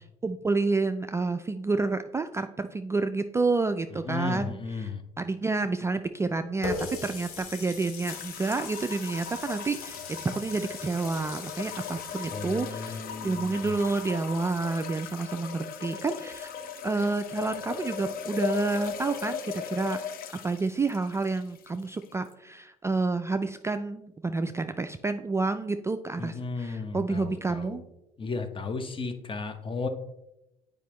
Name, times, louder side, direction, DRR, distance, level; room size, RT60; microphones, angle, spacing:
voice 1, 0.2-16.5 16.8-20.0 20.4-27.8, right 3 dB, 15° right, 8 dB, 0.3 m, -29 dB
voice 2, 4.0-5.0 12.3-13.7 26.2-27.8 28.2-29.9, left 4 dB, 30° left, 8 dB, 0.9 m, -34 dB
Water tap faucet, 6.6-12.4, left 4 dB, 85° left, 1.2 m, -40 dB
sound 1, 8.1-22.3, left 7 dB, 55° left, 0.7 m, -38 dB
8.3 x 5.1 x 3.1 m, 0.91 s
hypercardioid pair, 70°, 18 cm